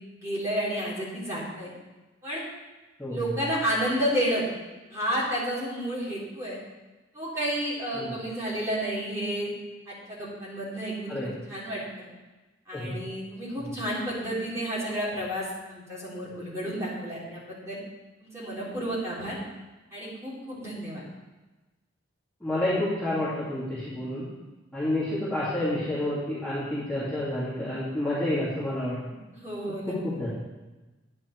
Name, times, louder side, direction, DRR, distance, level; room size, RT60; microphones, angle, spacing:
voice 1, 0.2-1.7 2.2-2.4 3.1-4.4 4.9-6.6 7.1-9.5 9.9-12.1 12.7-17.8 18.2-19.4 19.9-21.0 29.3-30.0, equal, 15° right, -8 dB, 4.1 m, -31 dB
voice 2, 3.0-3.3 8.0-8.1 11.1-11.3 12.7-12.9 13.6-13.7 22.4-24.3 24.7-29.0 29.7-30.3, left 1 dB, 10° left, -11 dB, 2.7 m, -29 dB
10.0 x 10.0 x 4.7 m, 1.1 s
head